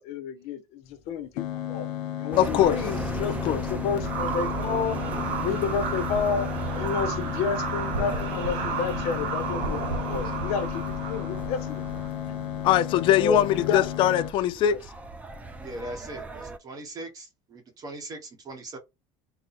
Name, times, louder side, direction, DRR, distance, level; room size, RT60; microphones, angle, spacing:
voice 1, 0.0-1.9 2.2-5.0 5.4-6.5 6.7-11.9 12.2-12.4 13.2-13.9 14.7-14.8, left 6 dB, 65° left, 0.9 m, -30 dB
sound 1, 1.4-14.3, left 12 dB, 80° left, 0.9 m, -34 dB
sound 2, 2.3-16.6, right 3 dB, 10° right, 0.4 m, -37 dB
voice 2, 2.4-2.8 3.4-3.6 12.6-14.8, left 11 dB, 45° left, 0.5 m, -21 dB
sound 3, 4.0-12.1, right 6 dB, 65° right, 0.8 m, -33 dB
voice 3, 15.6-18.8, right 2 dB, 30° right, 0.9 m, -40 dB
4.0 x 2.1 x 4.1 m
cardioid pair, 165°, 12 cm